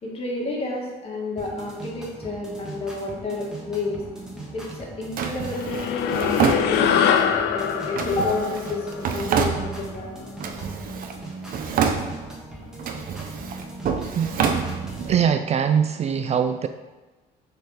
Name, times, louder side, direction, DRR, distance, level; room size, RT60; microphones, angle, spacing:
voice 1, 0.0-4.0 4.5-10.1, left 2 dB, 35° left, -2 dB, 1.9 m, -30 dB
sound 1, 1.4-15.1, right 2 dB, 5° right, 1.6 m, -39 dB
Drawer open or close, 5.2-7.2 8.0-10.0 10.4-11.2 11.5-12.4 12.8-15.2, right 6 dB, 55° right, 0.7 m, -27 dB
sound 2, 5.5-10.2, left 8 dB, 80° left, 0.6 m, -24 dB
voice 2, 14.1-14.7 15.1-16.7, right 7 dB, 40° right, 9 dB, 0.4 m, -23 dB
6.5 x 4.2 x 4.9 m, 1.2 s
cardioid pair, 110°, 17 cm